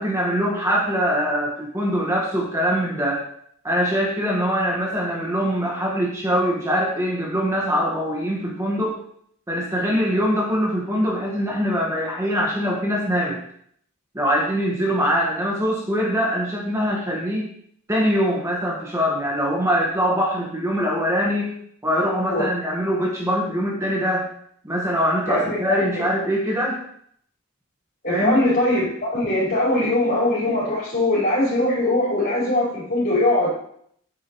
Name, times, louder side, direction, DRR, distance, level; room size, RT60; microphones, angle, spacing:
voice 1, 0.0-3.3 3.6-9.0 9.5-13.4 14.1-17.4 17.9-21.5 21.8-24.3 24.6-26.8 28.1-28.4, equal, 15° right, -3 dB, 1.4 m, -23 dB
voice 2, 25.3-26.0 28.0-33.5, left 1 dB, 45° left, -6 dB, 4.3 m, -21 dB
9.7 x 8.1 x 3.0 m, 0.66 s
head